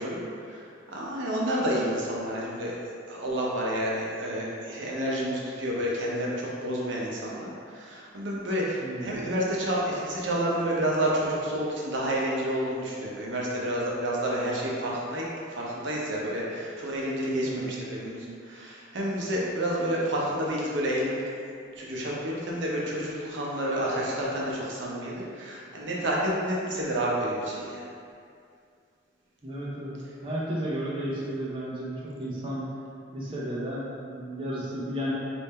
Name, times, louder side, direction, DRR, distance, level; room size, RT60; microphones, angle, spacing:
voice 1, 0.0-2.8 3.1-21.2 21.8-27.9, equal, 70° right, -4 dB, 0.7 m, -29 dB
voice 2, 17.4-17.8 29.4-30.0 30.2-32.6 33.1-35.1, right 1 dB, 25° right, -7 dB, 0.5 m, -33 dB
3.6 x 2.6 x 4.2 m, 2.3 s
head